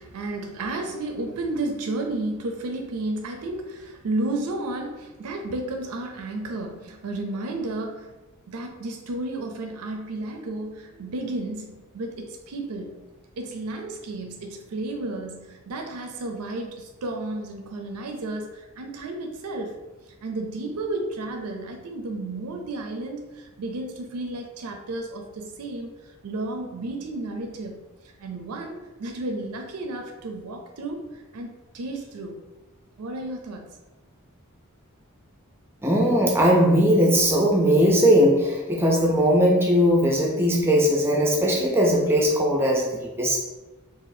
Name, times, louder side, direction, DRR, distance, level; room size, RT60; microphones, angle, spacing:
voice 1, 0.0-8.1 8.5-13.0 13.4-19.8 20.2-25.9 26.2-27.8 28.2-32.4 33.0-33.8, right 2 dB, 85° right, 3 dB, 0.5 m, -32 dB
voice 2, 35.8-43.4, equal, 10° right, -2 dB, 0.4 m, -19 dB
4.0 x 2.4 x 2.6 m, 1.1 s
head